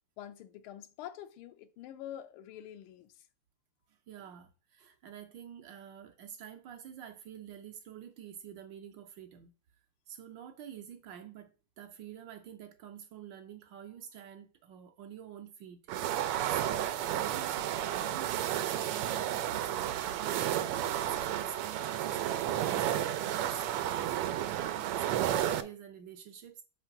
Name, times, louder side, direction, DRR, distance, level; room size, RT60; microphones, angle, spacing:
voice 1, 0.2-3.2, left 11 dB, 80° left, 1.5 m, -46 dB
voice 2, 4.1-9.5 10.1-15.8 16.5-20.5 21.1-26.6, right 9 dB, 70° right, 1.2 m, -47 dB
sound 1, 15.9-25.6, right 11 dB, 85° right, 1.5 m, -32 dB
5.8 x 3.2 x 5.7 m
omnidirectional pair, 2.4 m